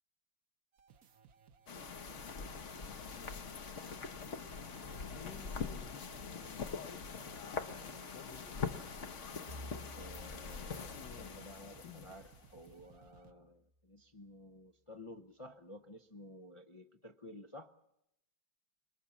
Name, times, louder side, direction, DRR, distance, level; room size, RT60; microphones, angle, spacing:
sound 1, 0.7-8.1 8.4-8.5 8.9-9.0 9.3-9.4 9.8-13.3, right 7 dB, 60° right, 1.5 m, -63 dB
sound 2, 1.7-12.7, left 5 dB, 50° left, 1.3 m, -43 dB
voice 1, 3.0-3.4 5.1-7.7 8.1-9.0 10.8-11.5 11.8-12.2, left 7 dB, 75° left, 9 dB, 1.8 m, -55 dB
Bowed string instrument, 9.5-13.7, equal, 30° right, 1.4 m, -54 dB
voice 2, 10.0-17.7, left 1 dB, 30° left, 4 dB, 0.6 m, -53 dB
25.5 x 22.5 x 7.3 m, 0.82 s
omnidirectional pair, 1.9 m